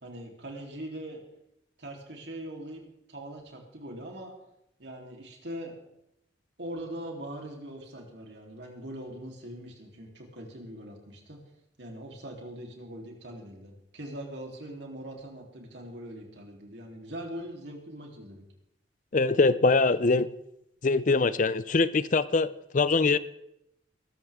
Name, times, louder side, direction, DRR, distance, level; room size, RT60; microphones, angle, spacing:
voice 1, 0.0-1.2 1.8-2.8 3.1-4.3 4.8-5.8 6.6-11.4 11.8-18.4, right 1 dB, 70° right, 3.6 m, -41 dB
voice 2, 19.1-20.3 20.8-23.2, left 3 dB, 45° left, 0.5 m, -23 dB
21.0 x 13.0 x 3.7 m
head